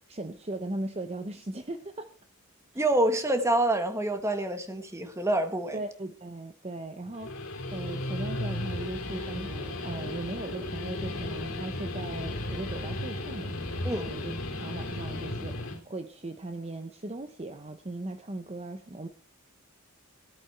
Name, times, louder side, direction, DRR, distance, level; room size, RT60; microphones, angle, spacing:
voice 1, 0.0-2.1 5.7-19.1, right 2 dB, 30° right, 8 dB, 0.8 m, -38 dB
voice 2, 2.7-5.8 13.8-14.1, right 1 dB, 15° right, 7 dB, 1.5 m, -27 dB
Guitar, 7.1-15.8, left 1 dB, 65° left, 3.1 m, -35 dB
17.5 x 8.5 x 4.5 m, 0.41 s
head